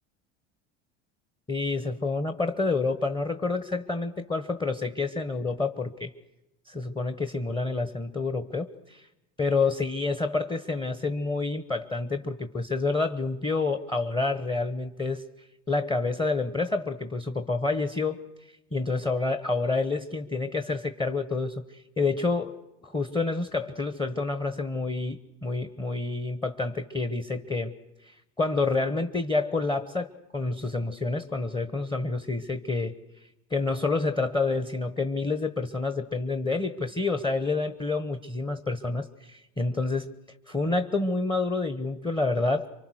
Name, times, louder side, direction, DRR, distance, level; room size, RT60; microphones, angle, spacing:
voice 1, 1.5-6.1 6.7-9.1 9.4-22.6 22.8-27.7 28.0-40.1 40.5-42.7, left 3 dB, 10° left, 9 dB, 1.2 m, -28 dB
28.0 x 24.5 x 6.4 m, 0.97 s
hypercardioid pair, 90°, 35 cm